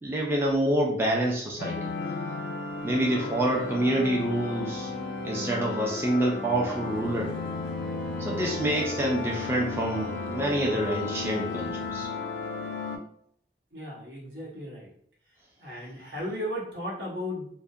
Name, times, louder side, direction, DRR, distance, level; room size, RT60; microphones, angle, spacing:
voice 1, 0.0-1.9 2.8-4.9 5.2-7.3 8.2-12.1, right 1 dB, 15° right, -2 dB, 0.3 m, -27 dB
sound 1, 1.6-13.0, left 3 dB, 90° left, 0.3 m, -34 dB
sound 2, 6.5-12.1, left 1 dB, 70° right, 1.2 m, -44 dB
voice 2, 13.7-14.9 15.6-17.5, equal, 90° right, -4 dB, 0.9 m, -35 dB
2.3 x 2.1 x 2.6 m, 0.66 s
head